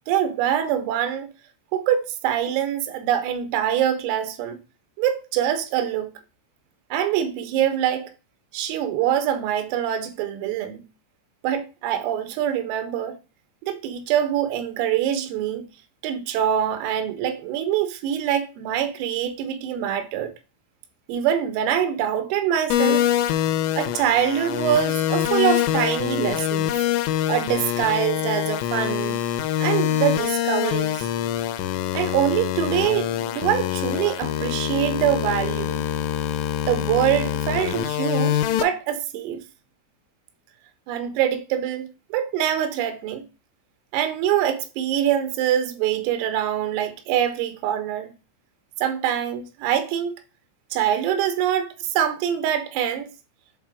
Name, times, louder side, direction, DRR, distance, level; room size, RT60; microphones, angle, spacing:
voice 1, 0.1-1.3 1.7-4.6 5.0-6.1 6.9-8.1 8.5-10.8 11.4-13.2 13.6-15.7 16.0-20.3 21.1-23.1 23.8-26.7 27.3-29.2 29.6-31.1 31.9-35.8 36.7-39.4 40.9-43.2 43.9-48.1 48.8-50.1 50.7-53.1, right 10 dB, 85° right, 3.6 m, -24 dB
sound 1, 22.7-38.6, left 11 dB, 85° left, 3.2 m, -25 dB
7.8 x 3.8 x 4.8 m
omnidirectional pair, 5.9 m